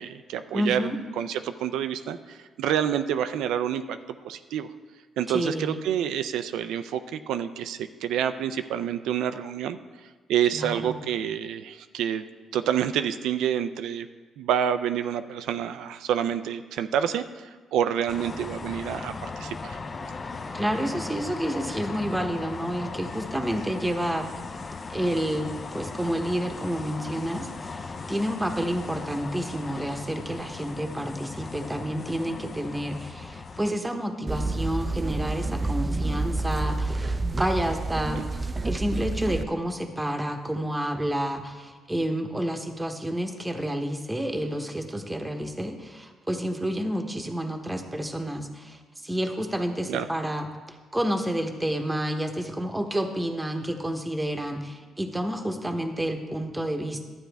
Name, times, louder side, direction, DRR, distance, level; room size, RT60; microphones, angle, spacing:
voice 1, 0.0-4.7 5.2-9.8 10.3-12.2 12.5-14.1 14.4-19.8 49.9-50.1, right 9 dB, 85° right, 10 dB, 0.4 m, -28 dB
voice 2, 0.5-1.0 5.3-5.8 10.5-11.0 20.5-24.3 24.9-38.3 38.6-57.0, equal, 10° right, 5 dB, 1.0 m, -29 dB
sound 1, 18.1-33.7, left 4 dB, 35° left, 0.6 m, -37 dB
sound 2, 34.3-39.4, right 2 dB, 25° right, 0.4 m, -29 dB
12.0 x 9.0 x 3.4 m, 1.4 s
cardioid pair, 90°, 0 cm